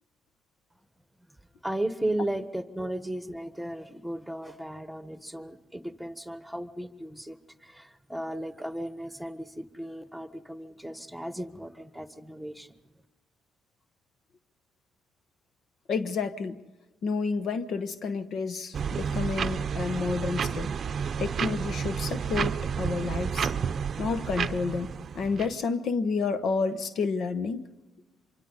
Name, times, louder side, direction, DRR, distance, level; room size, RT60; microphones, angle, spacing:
voice 1, 1.6-12.7, right 1 dB, ahead, 1.4 m, -35 dB
voice 2, 15.9-16.6 17.0-20.7 21.2-23.5 24.0-27.6, left 4 dB, 65° left, 1.0 m, -30 dB
sound 1, 18.7-25.5, right 7 dB, 55° right, 0.6 m, -31 dB
26.0 x 24.5 x 4.1 m
supercardioid pair, 65°, 0 cm